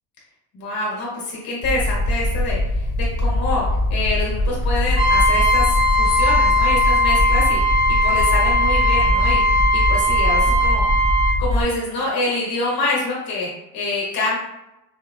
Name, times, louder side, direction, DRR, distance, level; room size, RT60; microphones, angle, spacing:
voice 1, 0.5-2.9 3.2-9.4 9.7-11.1 11.4-14.4, left 2 dB, 70° left, -5 dB, 1.4 m, -26 dB
sound 1, 1.6-11.6, left 1 dB, 25° left, 0.4 m, -22 dB
Trumpet, 4.9-11.4, equal, 90° right, 1.2 m, -18 dB
4.8 x 2.6 x 2.3 m, 0.92 s
cardioid pair, 160°, 37 cm